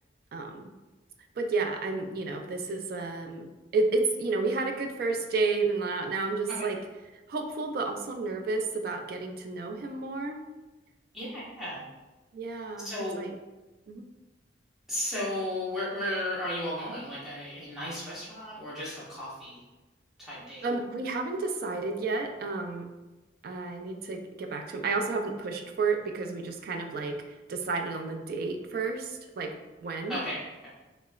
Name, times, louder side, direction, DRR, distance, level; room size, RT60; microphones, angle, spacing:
voice 1, 0.3-0.7 1.4-3.5 3.7-6.8 7.3-10.4 12.3-12.9 13.2-13.3 13.9-14.1 20.6-22.9 23.4-30.2, right 3 dB, 55° right, 5 dB, 0.3 m, -31 dB
voice 2, 11.1-11.8 12.8-13.2 14.9-19.6 20.2-20.6 30.1-30.4, left 1 dB, ahead, -10 dB, 0.8 m, -34 dB
3.2 x 2.9 x 2.3 m, 1.1 s
head